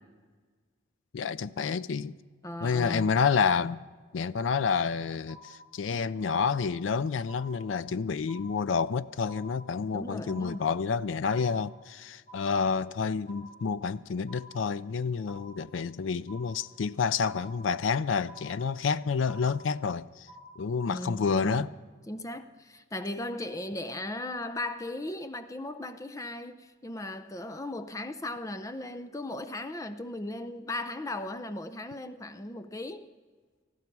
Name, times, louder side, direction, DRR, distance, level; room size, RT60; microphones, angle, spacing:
voice 1, 1.1-2.1 2.6-3.8 4.1-20.3 20.6-21.7, left 5 dB, 90° left, 0.4 m, -29 dB
voice 2, 2.4-3.2 9.9-10.7 20.9-21.7 22.1-33.1, left 1 dB, 15° left, 0.5 m, -37 dB
sound 1, 5.3-5.9 6.3-6.9 7.3-7.9 8.3-8.9 9.3-9.9 10.3-10.9 11.3-11.9 12.3-12.9 13.3-13.9 14.3-14.9 15.3-15.9 16.3-16.9 17.3-17.9 18.3-18.9 19.3-19.9 20.3-20.6, equal, 40° left, 2.5 m, -51 dB
19.0 x 15.0 x 4.7 m
head